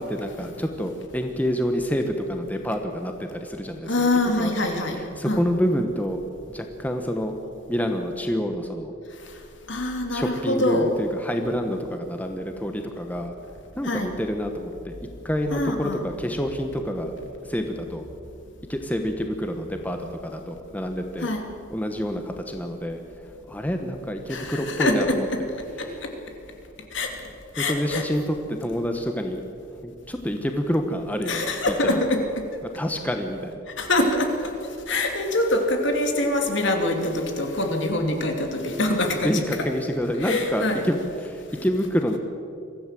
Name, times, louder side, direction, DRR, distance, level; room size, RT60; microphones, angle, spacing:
voice 1, 0.0-4.1 4.4-4.5 4.9-6.2 6.5-7.4 7.7-8.9 10.1-13.3 13.8-15.0 15.2-17.1 17.4-18.0 18.7-21.3 21.7-23.2 23.5-25.3 25.8-26.0 27.6-29.4 29.7-31.5 31.9-32.0 32.7-33.6 39.2-42.2, equal, 10° left, 5 dB, 1.1 m, -27 dB
voice 2, 3.9-5.0 5.2-5.5 9.7-10.9 13.8-14.1 15.5-16.0 21.2-21.4 24.3-25.4 25.8-26.1 26.9-27.1 27.5-28.0 31.3-32.5 33.8-34.5 34.9-39.4 40.2-40.8, left 1 dB, 65° left, 3 dB, 2.8 m, -24 dB
23.5 x 15.0 x 7.6 m, 2.7 s
head